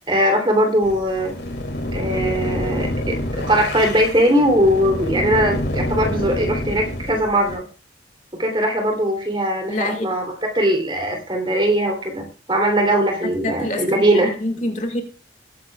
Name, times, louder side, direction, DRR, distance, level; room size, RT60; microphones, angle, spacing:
voice 1, 0.1-1.3 1.9-7.6 8.3-14.3, equal, 25° right, 3.2 m, -20 dB
sound 1, 0.8-7.6, left 1 dB, 75° left, 2.8 m, -27 dB
voice 2, 9.7-10.1 13.4-15.0, left 1 dB, 40° left, 2.2 m, -26 dB
20.0 x 10.0 x 2.4 m
head